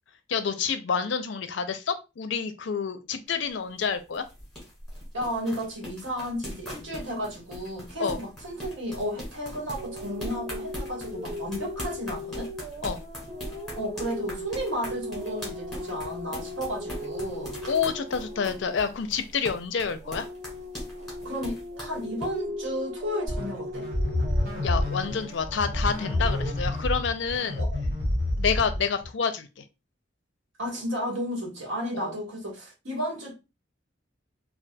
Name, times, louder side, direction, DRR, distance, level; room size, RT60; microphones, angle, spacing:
voice 1, 0.3-4.2 8.0-8.2 12.8-13.0 17.7-20.3 24.6-27.6 28.4-29.6 31.9-32.1, left 6 dB, 65° left, 0.4 m, -28 dB
sound 1, 3.3-22.3, left 1 dB, ahead, 1.5 m, -40 dB
voice 2, 5.1-12.5 13.8-17.6 21.2-23.8 27.5-27.8 30.6-33.3, equal, 75° right, 1.4 m, -33 dB
sound 2, 9.8-19.6 19.9-26.5, left 1 dB, 35° right, 1.0 m, -38 dB
sound 3, 23.3-29.1, left 1 dB, 50° right, 1.9 m, -28 dB
4.1 x 2.3 x 2.2 m
head